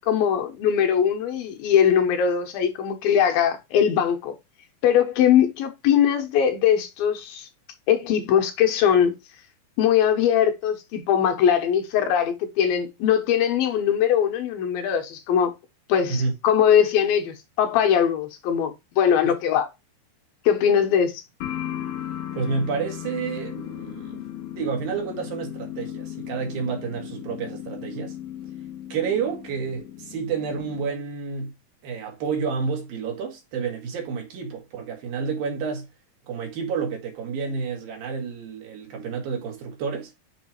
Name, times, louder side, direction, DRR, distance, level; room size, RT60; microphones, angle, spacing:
voice 1, 0.1-4.3 4.8-7.5 7.9-9.1 9.8-15.5 15.9-19.7 20.5-21.2, left 8 dB, 90° left, 2.9 m, -21 dB
sound 1, 21.4-30.9, left 11 dB, 70° left, 2.0 m, -36 dB
voice 2, 22.3-24.2 24.5-28.2 28.9-31.5 31.8-35.9 36.3-40.1, right 5 dB, 80° right, 3.6 m, -29 dB
7.9 x 3.2 x 4.5 m
omnidirectional pair, 4.1 m